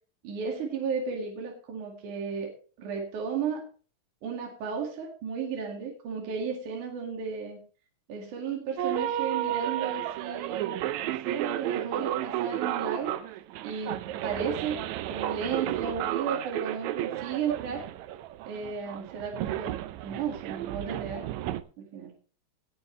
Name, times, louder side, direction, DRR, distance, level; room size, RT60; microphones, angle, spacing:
voice 1, 0.2-2.5 2.8-3.7 4.2-7.6 8.1-10.7 11.0-13.1 13.6-14.8 15.1-17.8 18.4-19.7 20.0-21.5 21.8-22.1, right 6 dB, 65° right, 0 dB, 3.5 m, -34 dB
sound 1, 8.8-21.6, right 12 dB, 85° right, 1.6 m, -32 dB
17.5 x 8.7 x 3.2 m, 0.39 s
omnidirectional pair, 4.0 m